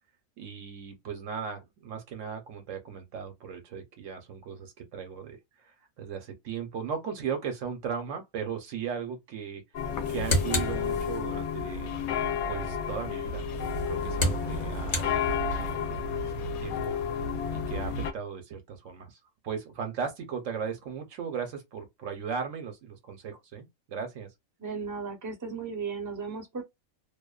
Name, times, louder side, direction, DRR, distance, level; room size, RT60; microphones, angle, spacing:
voice 1, 0.4-9.6 10.1-12.0 12.5-13.6 13.9-17.0 17.5-19.2 19.4-24.3, right 7 dB, 65° right, 1.0 m, -37 dB
sound 1, 9.7-18.1, left 6 dB, 85° left, 1.0 m, -31 dB
sound 2, 9.8-11.5 13.5-15.8, left 1 dB, 40° left, 0.9 m, -32 dB
voice 2, 24.6-26.6, right 5 dB, 20° right, 0.5 m, -35 dB
2.6 x 2.1 x 2.3 m
omnidirectional pair, 1.5 m